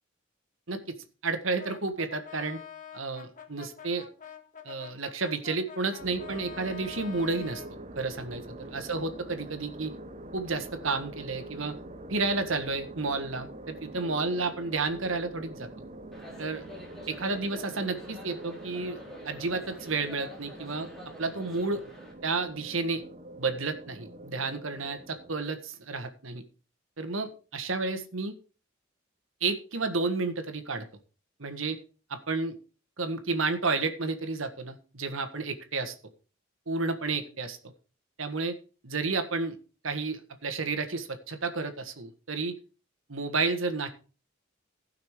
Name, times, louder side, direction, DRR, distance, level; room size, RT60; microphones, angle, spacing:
voice 1, 1.2-2.6 2.9-4.1 4.6-7.6 8.0-9.9 10.3-11.7 12.1-15.7 16.4-16.6 17.1-19.0 19.2-20.9 21.2-21.8 22.2-23.0 23.4-26.4 27.0-28.3 29.4-30.9 31.4-31.8 32.1-32.5 33.0-35.9 36.7-37.7 38.2-38.6 38.8-39.6 39.8-42.6 43.1-43.9, right 3 dB, 85° right, 8 dB, 1.6 m, -31 dB
Brass instrument, 1.6-7.7, left 7 dB, 40° left, 1.7 m, -46 dB
sound 1, 6.0-25.4, right 2 dB, 35° right, 0.7 m, -45 dB
sound 2, 16.1-22.1, left 1 dB, ahead, 4.4 m, -48 dB
15.5 x 5.9 x 4.8 m, 0.35 s
head